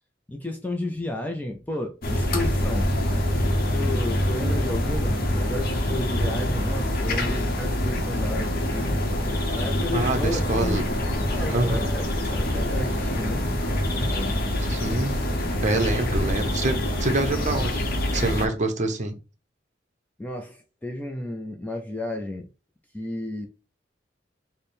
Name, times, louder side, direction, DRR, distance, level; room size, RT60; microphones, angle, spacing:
voice 1, 0.3-2.9 3.7-8.9 9.5-10.9 11.3-14.4 20.2-22.5 22.9-23.5, left 1 dB, 10° left, 0.4 m, -33 dB
sound 1, 2.0-18.5, left 1 dB, 55° left, 0.7 m, -25 dB
voice 2, 9.9-10.8 11.3-11.8 14.6-15.1 15.6-17.9 18.1-19.2, right 2 dB, 40° right, 0.7 m, -26 dB
3.3 x 2.1 x 4.2 m
head